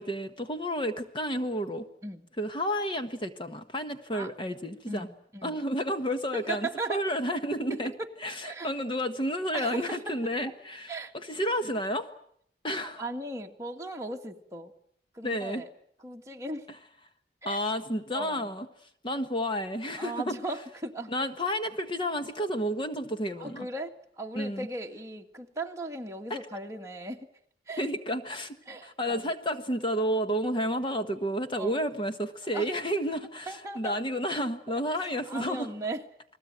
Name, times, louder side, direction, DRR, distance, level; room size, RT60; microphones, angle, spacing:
voice 1, 0.0-1.9 2.4-5.1 5.4-7.9 8.2-12.1 12.6-13.0 15.2-15.6 17.4-18.7 19.0-20.3 21.1-23.7 24.3-24.7 26.3-26.4 27.8-28.6 28.8-35.7, equal, 30° left, 9 dB, 1.2 m, -31 dB
voice 2, 4.9-5.5 6.3-7.0 7.7-7.8 8.4-8.7 9.5-10.2 10.4-10.5 10.9-11.1 13.0-14.7 15.1-15.7 16.0-16.7 17.4-17.6 18.1-18.5 20.0-21.1 23.4-23.9 24.2-27.2 27.7-27.9 28.7-29.3 31.5-31.8 32.5-32.7 33.5-34.0 35.3-36.0, right 2 dB, 15° right, 1 dB, 2.2 m, -37 dB
29.5 x 20.5 x 9.1 m, 0.69 s
head